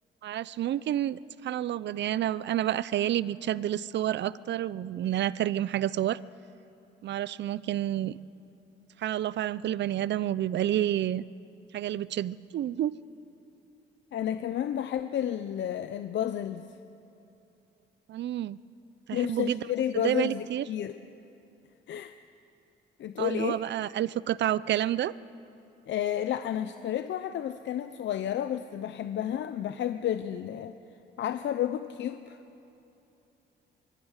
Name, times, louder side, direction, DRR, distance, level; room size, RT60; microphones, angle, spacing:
voice 1, 0.2-6.2 7.0-8.2 9.0-11.2 11.7-13.0 18.1-18.6 19.1-19.6 19.9-20.6 23.2-25.1, right 12 dB, 65° right, 19 dB, 0.6 m, -29 dB
voice 2, 14.1-16.6 19.1-21.0 21.9-22.1 23.0-23.6 25.9-30.8 31.2-32.4, left 10 dB, 65° left, 10 dB, 0.8 m, -31 dB
24.5 x 22.0 x 6.6 m, 2.9 s
cardioid pair, 90°, 20 cm